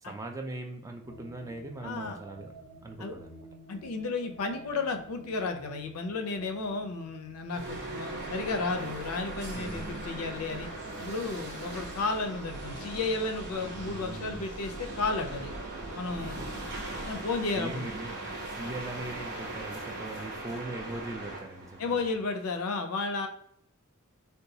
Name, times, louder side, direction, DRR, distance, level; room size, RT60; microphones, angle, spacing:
voice 1, 0.0-2.5 2.8-3.5 9.5-9.8 11.0-11.4 16.2-16.5 17.4-22.0, right 2 dB, 15° right, 4 dB, 0.3 m, -40 dB
sound 1, 1.0-14.4, right 2 dB, 90° right, 0.8 m, -50 dB
voice 2, 1.8-2.2 3.0-3.1 3.7-10.7 11.0-15.5 16.0-16.6 17.0-17.9 21.8-23.3, left 3 dB, 80° left, 6 dB, 0.5 m, -33 dB
sound 2, 7.5-22.6, right 2 dB, 55° right, 0.8 m, -39 dB
3.9 x 2.2 x 2.6 m, 0.67 s
head